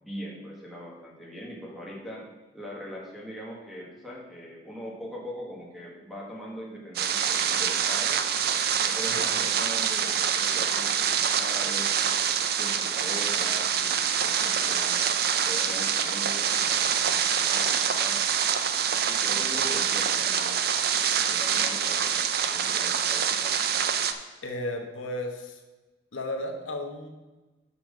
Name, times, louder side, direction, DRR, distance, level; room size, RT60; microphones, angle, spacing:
voice 1, 0.0-2.3 2.5-8.4 8.8-11.9 12.6-15.1 15.4-18.2 19.0-20.7 21.2-23.5, equal, ahead, -3 dB, 1.5 m, -41 dB
sound 1, 6.9-24.1, right 8 dB, 50° right, 0.5 m, -26 dB
voice 2, 24.4-25.6 26.1-27.1, left 1 dB, 85° left, 3 dB, 1.2 m, -34 dB
6.0 x 5.6 x 6.5 m, 1.2 s
head